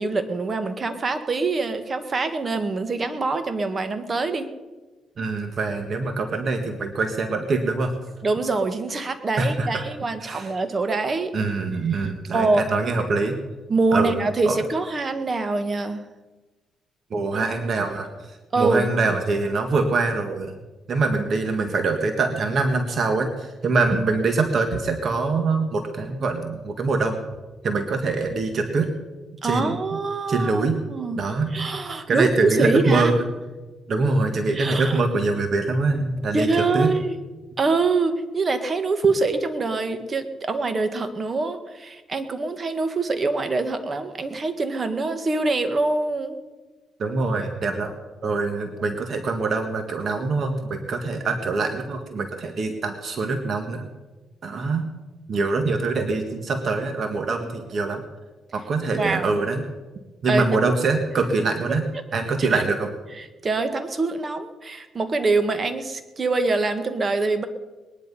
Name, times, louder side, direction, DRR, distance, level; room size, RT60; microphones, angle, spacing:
voice 1, 0.0-4.5 8.2-11.3 12.3-12.7 13.7-16.0 18.5-18.9 29.4-31.2 31.5-33.1 34.5-35.0 36.3-37.2 37.6-46.4 58.9-59.3 60.3-60.4 62.4-62.6 63.2-67.5, right 3 dB, 35° right, 9 dB, 1.7 m, -24 dB
voice 2, 5.2-7.9 9.4-9.8 10.2-10.5 11.3-13.4 13.9-14.2 14.4-14.6 17.1-18.3 18.6-20.5 20.9-27.2 27.6-28.9 29.4-30.0 30.3-30.8 31.1-33.2 33.9-36.5 36.7-36.9 47.0-47.9 48.2-53.9 54.4-54.9 55.3-58.0 58.5-59.6 60.2-61.8 62.1-62.9, right 3 dB, 50° right, 6 dB, 1.7 m, -24 dB
20.0 x 11.0 x 5.5 m, 1.2 s
cardioid pair, 90°, 0 cm